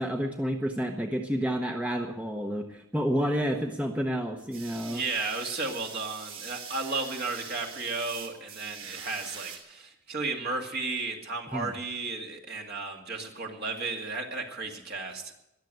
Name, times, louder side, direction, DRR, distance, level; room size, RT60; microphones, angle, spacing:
voice 1, 0.0-5.0 11.5-11.7, equal, 5° right, 3 dB, 0.9 m, -30 dB
sound 1, 4.4-9.6, right 7 dB, 85° right, 3.5 m, -43 dB
voice 2, 4.8-15.3, right 3 dB, 50° right, 1 dB, 2.4 m, -34 dB
21.5 x 7.5 x 7.9 m, 0.84 s
head